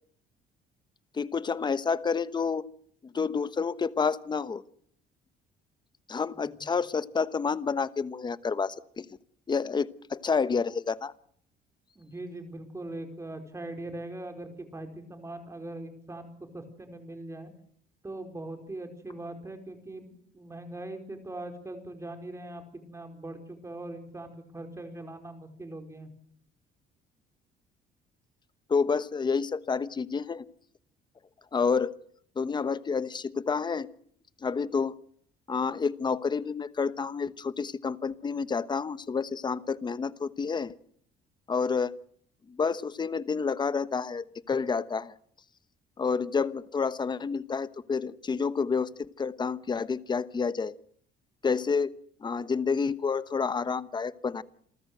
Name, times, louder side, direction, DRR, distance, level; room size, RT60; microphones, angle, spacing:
voice 1, 1.1-2.6 3.0-4.6 6.1-9.1 9.5-11.1 28.7-30.4 31.5-31.9 32.4-33.9 34.4-34.9 35.5-40.7 41.5-41.9 42.5-45.1 46.0-48.9 49.2-50.7 51.4-51.9 52.2-54.4, left 5 dB, 25° left, 15 dB, 1.1 m, -29 dB
voice 2, 6.3-6.7 11.9-17.5 18.0-26.1, right 2 dB, 15° right, 6 dB, 4.8 m, -41 dB
28.0 x 14.0 x 8.0 m, 0.63 s
cardioid pair, 110°, 17 cm